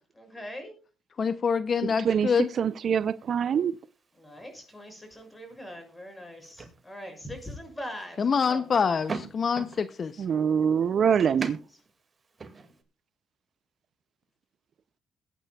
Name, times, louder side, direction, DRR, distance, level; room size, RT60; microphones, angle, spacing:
voice 1, 0.1-0.7 4.2-8.6, equal, 15° left, 6.4 m, -42 dB
voice 2, 1.2-2.5 8.2-10.2, left 6 dB, 45° left, 0.5 m, -26 dB
voice 3, 1.8-3.8 10.2-11.6, right 7 dB, 55° right, 0.4 m, -25 dB
sound 1, 2.4-12.8, right 4 dB, 35° right, 2.0 m, -45 dB
21.5 x 9.0 x 2.3 m
cardioid pair, 90°, 0 cm